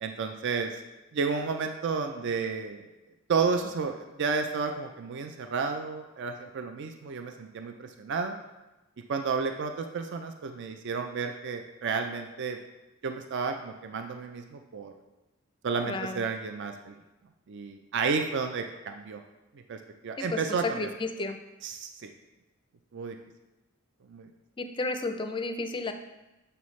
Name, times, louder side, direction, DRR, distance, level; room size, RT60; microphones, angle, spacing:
voice 1, 0.0-0.8 1.1-2.9 3.3-8.4 9.1-12.6 13.0-14.9 15.6-17.0 17.5-19.2 19.7-19.8 20.0-20.9 21.6-22.1 22.9-23.1 24.1-24.3, right 5 dB, 55° right, 6 dB, 0.4 m, -31 dB
voice 2, 15.9-16.2 20.3-21.4 24.6-25.9, left 3 dB, 25° left, 7 dB, 0.4 m, -32 dB
6.9 x 5.6 x 3.2 m, 1.0 s
head